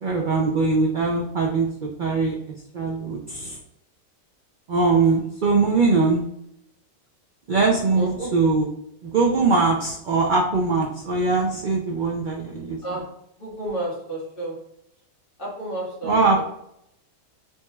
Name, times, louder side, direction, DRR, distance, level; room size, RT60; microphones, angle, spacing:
voice 1, 0.0-2.4 2.7-3.6 4.7-6.2 7.5-8.7 9.0-12.8 16.0-16.4, right 3 dB, 80° right, -1 dB, 0.4 m, -21 dB
voice 2, 8.0-8.3 12.8-13.1 13.4-14.6 15.4-16.2, right 1 dB, 40° left, -6 dB, 1.6 m, -31 dB
4.3 x 2.9 x 2.2 m, 0.78 s
omnidirectional pair, 1.5 m